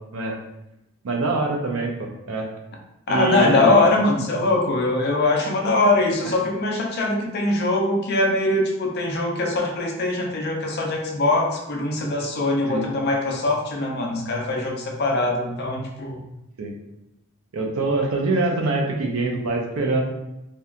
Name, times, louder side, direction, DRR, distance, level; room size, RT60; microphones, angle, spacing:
voice 1, 1.0-2.5 3.1-3.8 6.2-6.3 12.7-12.8 16.6-16.7 17.5-20.0, right 2 dB, 75° right, 1 dB, 0.5 m, -24 dB
voice 2, 3.1-16.2, left 2 dB, 50° left, 0 dB, 0.5 m, -22 dB
2.8 x 2.2 x 2.4 m, 0.88 s
head